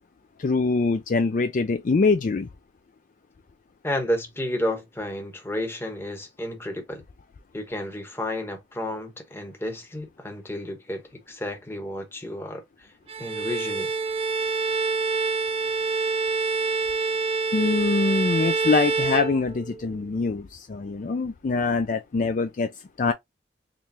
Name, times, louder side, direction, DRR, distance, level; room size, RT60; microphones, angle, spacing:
voice 1, 0.4-2.5 17.5-22.7 23.0-23.1, left 4 dB, 45° left, 0.4 m, -24 dB
voice 2, 3.8-7.0 7.5-12.9 13.2-13.9, left 1 dB, 15° left, 1.0 m, -31 dB
Bowed string instrument, 13.1-19.9, right 4 dB, 30° right, 0.4 m, -26 dB
3.7 x 3.1 x 2.7 m
head